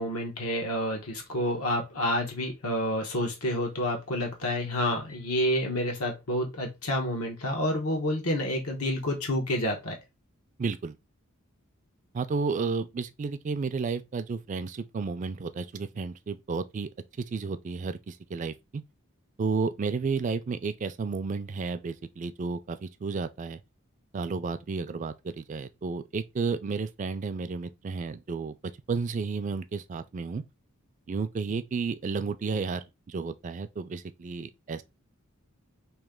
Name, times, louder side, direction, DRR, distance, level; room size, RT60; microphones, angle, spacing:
voice 1, 0.0-10.0, left 1 dB, 90° left, 1.2 m, -29 dB
voice 2, 10.6-10.9 12.1-16.9 17.2-18.8 19.4-23.6 24.1-28.6 28.9-30.4 31.1-34.8, right 4 dB, 35° right, 0.3 m, -32 dB
3.1 x 2.8 x 3.6 m
head